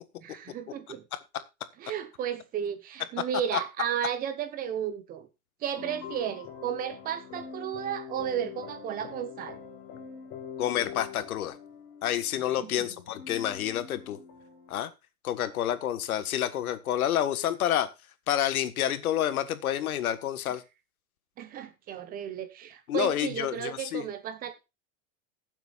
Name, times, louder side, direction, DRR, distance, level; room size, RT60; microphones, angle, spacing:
voice 1, 0.2-1.0 1.8-5.3 5.6-9.6 12.6-12.9 21.4-24.6, right 9 dB, 20° right, 1.1 m, -34 dB
sound 1, 5.8-14.8, left 7 dB, 35° left, 3.4 m, -44 dB
voice 2, 10.6-11.6 12.0-14.2 14.7-14.9 15.2-17.9 18.3-20.6 22.9-24.1, left 11 dB, 85° left, 1.6 m, -29 dB
20.5 x 7.5 x 2.5 m
supercardioid pair, 160°, 42 cm